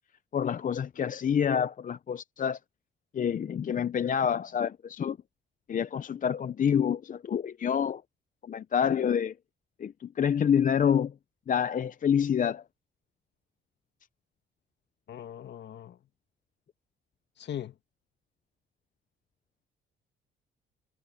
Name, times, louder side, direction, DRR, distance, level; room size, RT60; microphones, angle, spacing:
voice 1, 0.3-2.6 3.1-5.2 5.7-8.0 8.4-9.3 9.8-11.1 11.5-12.6, left 8 dB, 40° left, 0.6 m, -27 dB
voice 2, 15.1-16.0 17.4-17.7, left 10 dB, 60° left, 1.8 m, -40 dB
cardioid pair, 90°, 20 cm